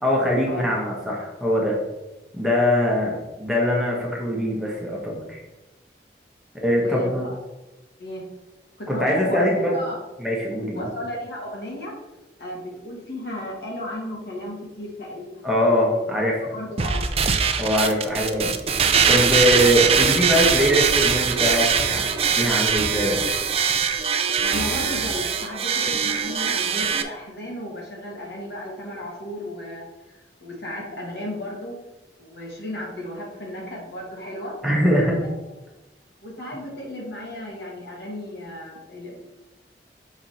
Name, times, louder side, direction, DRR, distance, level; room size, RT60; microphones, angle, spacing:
voice 1, 0.0-1.8 2.3-5.4 6.6-7.3 8.9-9.8 10.2-10.9 15.4-16.5 17.6-18.6 19.1-23.3 34.6-35.2, equal, ahead, -4 dB, 1.4 m, -22 dB
voice 2, 6.8-7.3 8.0-8.3 8.8-9.5 9.7-10.0 10.7-11.9 12.4-15.4 15.9-16.1 16.5-17.1 24.4-31.8 32.2-34.6 35.2-35.3 36.2-39.2, left 1 dB, 65° left, -3 dB, 2.1 m, -34 dB
sound 1, 16.8-27.0, right 6 dB, 35° right, 0.5 m, -22 dB
6.2 x 4.9 x 4.3 m, 1.0 s
head